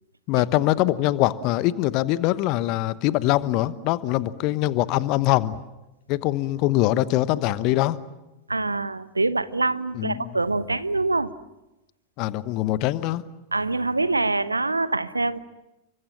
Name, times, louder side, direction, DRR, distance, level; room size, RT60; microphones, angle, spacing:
voice 1, 0.3-5.5 6.1-8.0 9.9-10.3 12.2-13.2, left 16 dB, 40° left, 17 dB, 1.1 m, -23 dB
voice 2, 8.5-11.3 13.5-15.4, right 3 dB, 80° right, 16 dB, 0.9 m, -25 dB
29.5 x 24.5 x 7.4 m, 0.98 s
figure-of-eight pair, 90°, 0 cm